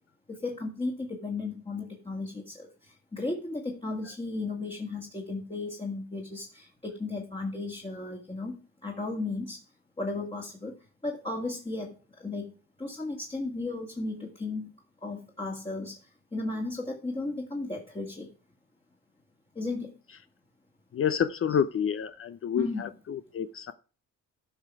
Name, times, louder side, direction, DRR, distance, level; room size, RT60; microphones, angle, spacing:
voice 1, 0.3-9.6 10.0-10.8 11.0-12.5 12.8-14.7 15.0-16.0 16.3-18.3 19.6-20.0 22.6-22.9, left 3 dB, 20° left, 0 dB, 2.1 m, -35 dB
voice 2, 20.9-23.7, left 8 dB, 45° left, 13 dB, 0.7 m, -29 dB
13.5 x 5.7 x 4.7 m, 0.37 s
cardioid pair, 90°, 30 cm